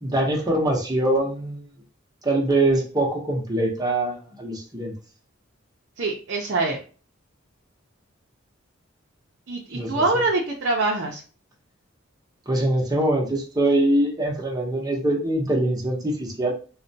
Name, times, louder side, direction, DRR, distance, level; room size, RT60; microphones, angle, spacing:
voice 1, 0.0-1.7 2.2-4.9 9.7-10.2 12.5-16.5, right 1 dB, 20° right, 0 dB, 0.8 m, -23 dB
voice 2, 6.0-6.8 9.5-11.2, right 2 dB, 60° right, -1 dB, 0.6 m, -24 dB
4.0 x 2.2 x 2.7 m, 0.38 s
head